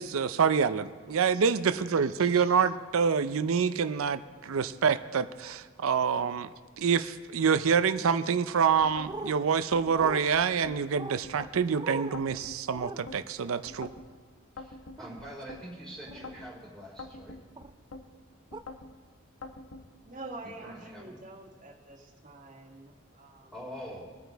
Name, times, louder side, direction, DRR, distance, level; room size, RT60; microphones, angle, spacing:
voice 1, 0.0-6.5 6.8-13.9, right 6 dB, 80° right, 12 dB, 0.5 m, -26 dB
voice 2, 2.1-2.4 14.5-17.4 20.4-21.2 23.5-24.1, equal, ahead, -4 dB, 3.4 m, -44 dB
sound 1, 8.8-9.2 9.7-10.8 11.2-11.7 12.1-13.2 13.7-14.1 14.6-15.6 16.1-16.5 17.0-18.0 18.5-18.9 19.4-19.8, left 3 dB, 80° left, 1.1 m, -44 dB
sound 2, 9.1-9.3 10.0-10.2 11.0-11.2 11.7-12.2 12.8-13.0 15.0-15.1 16.0-16.3 17.6-17.7 18.5-18.6, right 2 dB, 20° right, 0.4 m, -39 dB
voice 3, 20.0-23.5, right 2 dB, 35° right, -3 dB, 1.7 m, -46 dB
22.5 x 9.0 x 3.4 m, 1.5 s
head